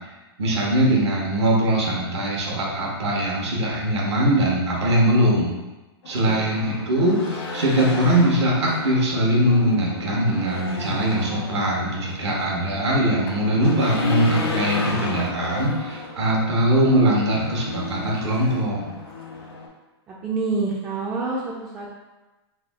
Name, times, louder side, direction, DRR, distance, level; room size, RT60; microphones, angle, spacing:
voice 1, 0.4-5.5 6.1-18.8, right 1 dB, 80° right, -3 dB, 1.0 m, -21 dB
Race car auto racing / Engine, 6.0-19.7, left 3 dB, 70° left, 1.1 m, -34 dB
voice 2, 20.1-21.9, right 3 dB, 15° right, -4 dB, 0.3 m, -27 dB
3.3 x 2.1 x 3.4 m, 1.1 s
hypercardioid pair, 150°, 14 cm